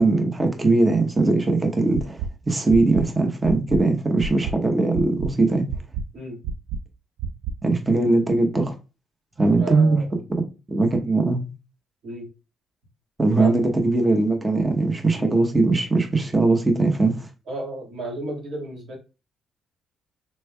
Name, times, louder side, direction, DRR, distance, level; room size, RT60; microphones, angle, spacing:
voice 1, 0.0-5.7 7.6-8.7 9.4-10.0 10.7-11.5 13.2-17.3, right 3 dB, 20° right, 0.8 m, -20 dB
sound 1, 1.9-2.3 2.7-3.0 3.4-3.8 4.2-4.5 4.9-5.3 5.7-6.0 6.4-6.8 7.2-7.5, right 6 dB, 80° right, 0.3 m, -28 dB
voice 2, 9.5-10.2 12.0-12.3 13.3-13.7 15.2-15.4 17.5-19.0, right 1 dB, 65° right, 1.8 m, -33 dB
4.2 x 3.2 x 2.3 m
cardioid pair, 90°, 0 cm